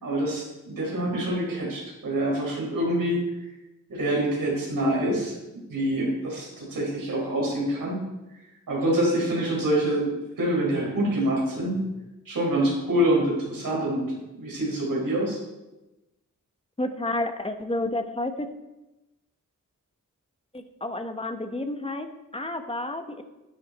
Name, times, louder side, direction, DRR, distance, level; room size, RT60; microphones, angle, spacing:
voice 1, 0.0-3.2 3.9-5.3 5.7-8.0 8.7-11.8 12.3-15.4, right 1 dB, 90° right, -3 dB, 4.5 m, -26 dB
voice 2, 16.8-18.5 20.5-23.2, left 2 dB, 20° left, 7 dB, 1.1 m, -30 dB
10.5 x 10.5 x 4.2 m, 1.0 s
wide cardioid pair, 70°, 32 cm